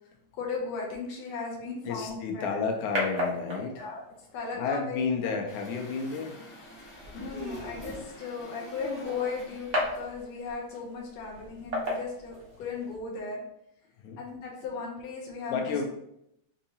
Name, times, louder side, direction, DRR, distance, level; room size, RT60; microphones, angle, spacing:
voice 1, 0.3-2.6 3.8-5.0 5.2-5.3 7.1-13.4 14.2-15.8, left 4 dB, 75° left, -1 dB, 1.8 m, -36 dB
voice 2, 1.8-3.9 4.6-6.4 14.0-14.2 15.5-15.8, left 5 dB, 90° left, 3 dB, 2.1 m, -31 dB
sound 1, 2.0-13.0, left 1 dB, 80° right, 0.6 m, -37 dB
Truck, 5.5-10.3, equal, 45° left, 1.6 m, -49 dB
Human voice, 5.5-5.6 6.9-8.1 8.5-9.6, right 3 dB, 55° right, 2.1 m, -44 dB
6.4 x 2.7 x 2.8 m, 0.78 s
omnidirectional pair, 3.3 m